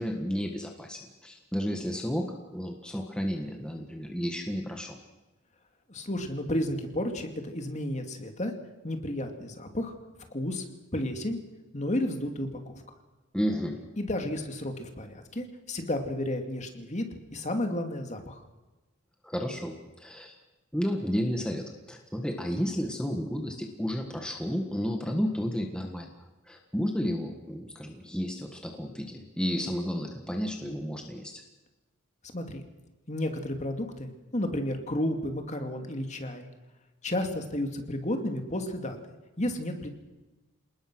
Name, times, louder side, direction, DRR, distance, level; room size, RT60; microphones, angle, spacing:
voice 1, 0.0-2.3 2.5-5.0 13.3-13.8 19.2-20.4 20.7-26.1 26.5-31.4, equal, 5° left, 2 dB, 1.6 m, -32 dB
voice 2, 5.9-8.5 8.8-9.9 10.3-10.6 10.9-11.4 11.7-12.8 14.0-17.1 17.3-18.4 32.3-32.6 33.1-36.5 37.0-39.0 39.4-39.9, left 1 dB, 35° left, 5 dB, 2.4 m, -32 dB
27.5 x 19.5 x 6.3 m, 1.1 s
head